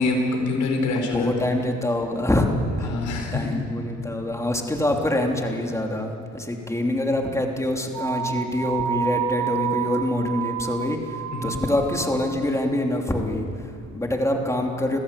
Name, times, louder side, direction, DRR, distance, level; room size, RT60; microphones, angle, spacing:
voice 1, 0.0-1.3 2.8-3.6 11.3-11.6, left 3 dB, 75° left, 2 dB, 5.1 m, -25 dB
voice 2, 0.9-2.5 2.8-3.0 3.3-15.0, left 1 dB, 10° left, 2 dB, 3.1 m, -25 dB
sound 1, 7.9-12.6, right 10 dB, 85° right, 1.4 m, -29 dB
26.5 x 16.0 x 8.3 m, 2.5 s
cardioid pair, 90°, 30 cm